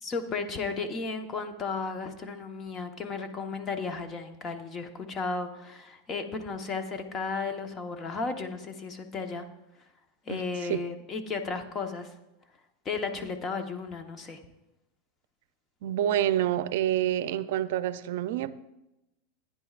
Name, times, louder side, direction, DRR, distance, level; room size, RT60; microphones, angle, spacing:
voice 1, 0.0-9.5 10.2-12.1 12.8-14.4, left 4 dB, 30° left, 6 dB, 1.1 m, -34 dB
voice 2, 15.8-18.5, right 12 dB, 75° right, 14 dB, 0.5 m, -27 dB
15.5 x 9.8 x 2.5 m, 0.93 s
supercardioid pair, 135°, 0 cm